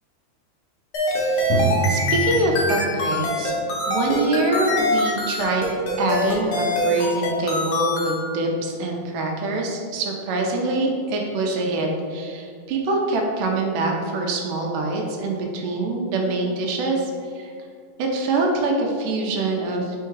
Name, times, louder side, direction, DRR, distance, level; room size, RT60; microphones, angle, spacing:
sound 1, 0.9-8.2, left 1 dB, 70° left, 1.3 m, -24 dB
voice 1, 1.2-3.5 3.9-5.7 6.0-17.5 18.0-20.0, right 2 dB, 80° right, 1 dB, 2.3 m, -25 dB
Drum, 1.5-5.0, right 1 dB, 85° left, 1.6 m, -28 dB
4.7 x 4.4 x 4.6 m, 2.3 s
omnidirectional pair, 3.9 m